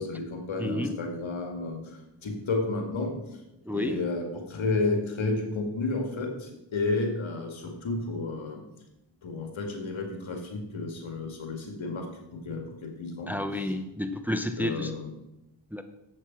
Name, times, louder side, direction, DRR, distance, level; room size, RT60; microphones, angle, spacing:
voice 1, 0.0-3.1 3.7-8.6 9.2-12.1 12.3-13.7 14.6-15.1, left 3 dB, 80° left, 3 dB, 2.0 m, -32 dB
voice 2, 0.6-1.0 3.7-4.1 13.3-14.9 15.7-15.8, left 1 dB, 5° right, 8 dB, 0.8 m, -30 dB
7.8 x 6.6 x 5.9 m, 0.92 s
cardioid pair, 60°, 46 cm